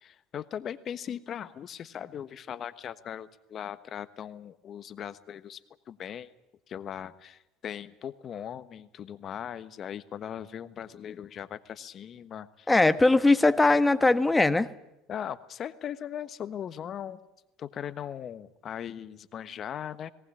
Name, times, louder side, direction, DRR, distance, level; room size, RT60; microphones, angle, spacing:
voice 1, 0.0-5.6 5.9-6.3 6.7-12.7 15.1-17.2 17.6-20.1, left 9 dB, 45° left, 13 dB, 1.2 m, -39 dB
voice 2, 12.7-14.7, left 2 dB, 15° left, 12 dB, 1.3 m, -20 dB
19.0 x 18.5 x 9.9 m, 0.87 s
hypercardioid pair, 80°, 0 cm